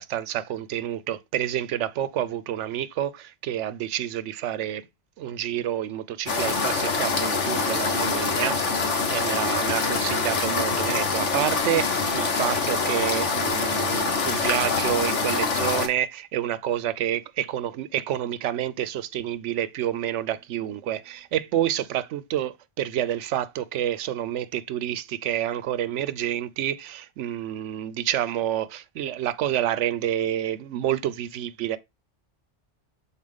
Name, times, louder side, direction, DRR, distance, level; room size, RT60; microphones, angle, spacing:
voice 1, 0.0-4.9 5.2-8.6 9.1-31.8, right 11 dB, 90° right, 0.9 m, -28 dB
sound 1, 6.3-15.9, left 4 dB, 85° left, 1.4 m, -25 dB
6.6 x 4.3 x 3.6 m
omnidirectional pair, 1.2 m